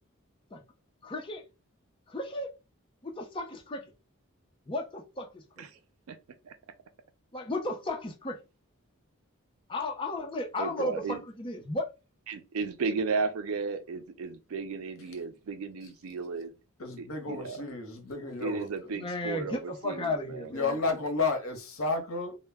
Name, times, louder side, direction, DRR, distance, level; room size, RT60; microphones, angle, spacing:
voice 1, 1.0-1.4 2.1-2.5 3.0-3.9 4.7-5.4 7.3-8.4 9.7-11.9 18.9-20.8, left 1 dB, 25° left, 0.5 m, -34 dB
voice 2, 10.6-11.2 12.3-16.5 17.0-17.6 18.4-20.5, right 4 dB, 80° right, 0.4 m, -34 dB
voice 3, 16.8-18.9 20.5-22.4, left 3 dB, 75° left, 0.8 m, -32 dB
2.1 x 2.1 x 3.3 m
head